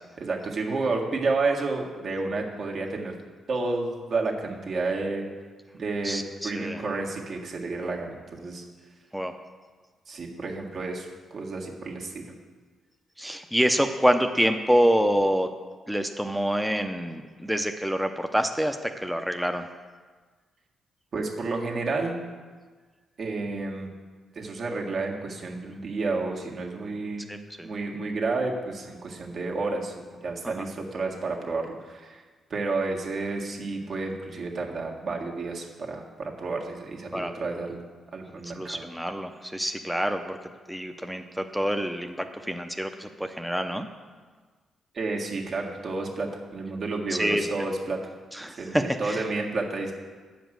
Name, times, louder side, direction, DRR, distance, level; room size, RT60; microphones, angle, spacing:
voice 1, 0.2-3.2 3.5-5.3 5.7-8.6 10.1-12.3 21.1-22.2 23.2-23.9 24.3-27.3 27.6-32.2 32.5-37.8 38.1-38.8 44.9-48.0 48.5-49.9, right 3 dB, 55° right, 0 dB, 1.7 m, -31 dB
voice 2, 6.0-6.8 9.1-9.4 13.2-15.5 15.9-19.7 27.3-27.7 30.4-30.6 37.1-37.3 38.4-40.4 40.7-43.9 47.1-47.5 48.3-49.2, equal, ahead, 6 dB, 0.7 m, -26 dB
9.0 x 5.2 x 7.6 m, 1.4 s
cardioid pair, 75°, 0 cm